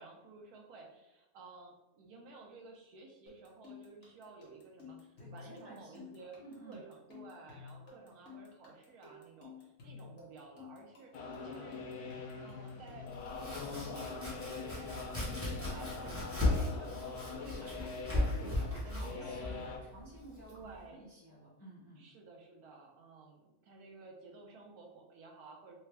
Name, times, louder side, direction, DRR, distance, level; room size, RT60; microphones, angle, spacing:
voice 1, 0.0-6.4 6.6-11.7 12.4-13.1 13.3-15.2 15.6-19.7 20.5-21.0 22.0-25.8, right 3 dB, 85° right, 1 dB, 1.2 m, -54 dB
sound 1, 3.3-15.6, left 5 dB, 55° left, 1.2 m, -53 dB
voice 2, 5.2-6.8 15.7-15.9 18.1-22.0, right 2 dB, 30° left, -7 dB, 0.4 m, -54 dB
sound 2, 11.1-19.8, left 4 dB, 85° left, 1.1 m, -44 dB
Domestic sounds home sounds, 13.1-20.8, left 2 dB, 10° right, 0.9 m, -37 dB
3.3 x 2.3 x 3.3 m, 0.99 s
omnidirectional pair, 1.6 m